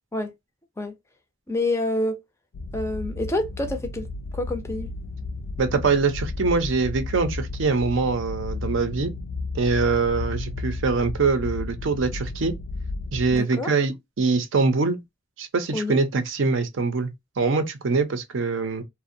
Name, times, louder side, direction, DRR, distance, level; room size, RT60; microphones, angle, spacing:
voice 1, 1.5-2.2 2.7-4.1 4.3-4.9 13.3-13.7 15.7-16.0, left 2 dB, 15° left, 0.4 m, -27 dB
sound 1, 2.5-13.4, left 3 dB, 75° left, 0.4 m, -33 dB
voice 2, 5.6-9.1 9.5-12.6 13.1-15.0 15.4-17.1 17.4-18.8, right 4 dB, 65° right, 0.5 m, -23 dB
2.5 x 2.0 x 2.5 m
head